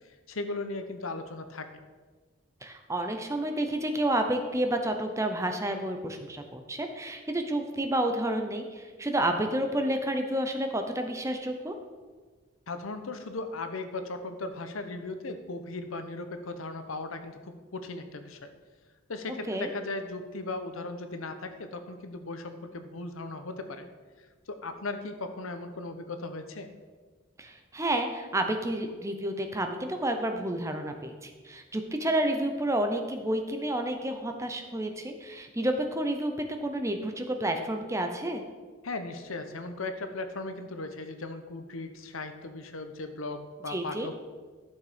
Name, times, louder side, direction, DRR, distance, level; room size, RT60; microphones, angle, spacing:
voice 1, 0.3-1.7 12.7-18.5 19.1-23.9 24.5-26.7 38.8-44.2, left 2 dB, 80° left, 8 dB, 1.0 m, -37 dB
voice 2, 2.6-11.7 19.5-19.7 27.4-38.4 43.7-44.1, right 1 dB, 15° right, 5 dB, 0.7 m, -30 dB
12.0 x 6.5 x 5.1 m, 1.4 s
head